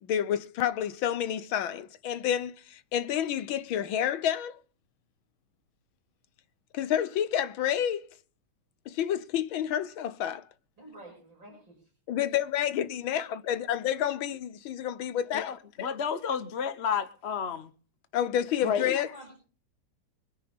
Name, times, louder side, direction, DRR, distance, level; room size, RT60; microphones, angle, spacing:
voice 1, 0.0-4.6 6.7-8.1 8.9-10.4 12.1-16.0 18.1-19.1, left 10 dB, 70° left, 1.7 m, -29 dB
voice 2, 10.8-12.2 18.9-19.3, right 1 dB, 55° right, 6.8 m, -49 dB
voice 3, 15.3-17.7 18.6-19.0, left 7 dB, 40° left, 1.0 m, -31 dB
25.0 x 10.0 x 3.7 m
omnidirectional pair, 2.4 m